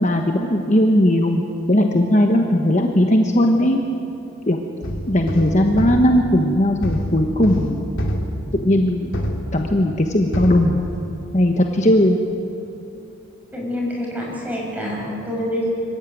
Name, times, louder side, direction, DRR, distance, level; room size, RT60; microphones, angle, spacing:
voice 1, 0.0-3.8 4.5-4.6 5.1-7.8 8.6-9.1 9.5-10.8 11.3-12.2, left 1 dB, 35° left, 3 dB, 1.2 m, -17 dB
sound 1, 4.8-10.1 10.3-11.4, equal, 70° left, 2.5 m, -27 dB
voice 2, 13.5-15.7, equal, 5° right, -3 dB, 5.9 m, -26 dB
25.5 x 15.0 x 9.2 m, 2.8 s
head